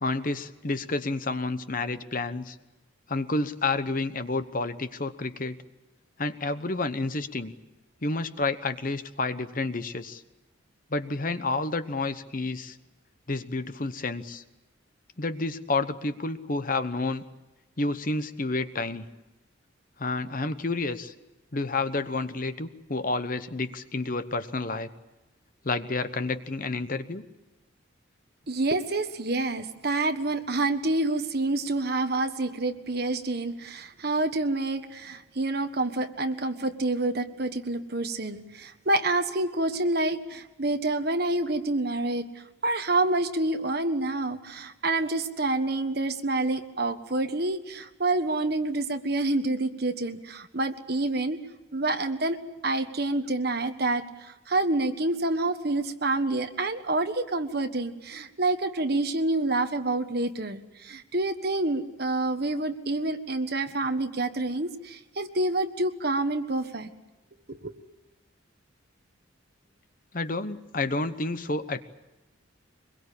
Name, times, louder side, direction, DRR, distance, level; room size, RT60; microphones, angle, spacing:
voice 1, 0.0-2.6 3.1-5.6 6.2-7.5 8.0-10.2 10.9-12.8 13.3-14.4 15.2-17.2 17.8-19.1 20.0-21.1 21.5-24.9 25.6-27.2 70.1-71.8, left 3 dB, 40° left, 11 dB, 1.0 m, -30 dB
voice 2, 28.5-42.3 42.6-51.4 51.7-66.9 67.6-67.7, right 2 dB, 50° right, 8 dB, 1.5 m, -28 dB
24.0 x 22.0 x 8.6 m, 1.0 s
head